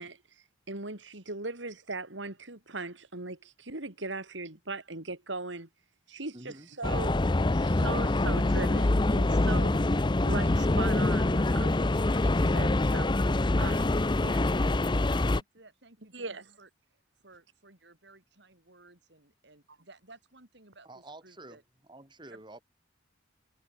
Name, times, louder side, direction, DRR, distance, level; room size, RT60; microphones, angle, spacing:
voice 1, 0.0-5.7 6.1-7.2 7.5-9.8 10.2-13.1 13.6-13.8 14.2-14.4 16.1-16.4, right 3 dB, 80° right, 3.7 m, -39 dB
voice 2, 6.3-6.7 20.8-22.6, right 1 dB, 25° right, 7.5 m, -49 dB
sound 1, 6.8-15.4, left 2 dB, 25° left, 0.6 m, -25 dB
voice 3, 14.2-21.6 22.3-22.4, right 3 dB, 65° right, 5.1 m, -56 dB
head